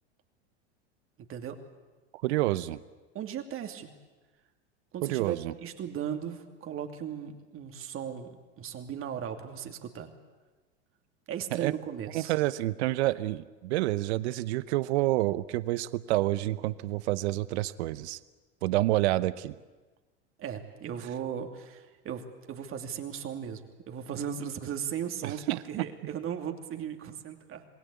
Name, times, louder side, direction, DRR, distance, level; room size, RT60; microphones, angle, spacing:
voice 1, 2.2-2.8 5.0-5.5 11.5-11.7 12.1-18.2 18.6-19.5 25.2-25.9, right 17 dB, 70° right, 16 dB, 0.9 m, -28 dB
voice 2, 3.1-3.9 4.9-10.1 11.3-12.3 20.4-27.7, right 8 dB, 40° right, 5 dB, 2.7 m, -37 dB
27.5 x 19.5 x 8.4 m, 1.2 s
hypercardioid pair, 105°, 34 cm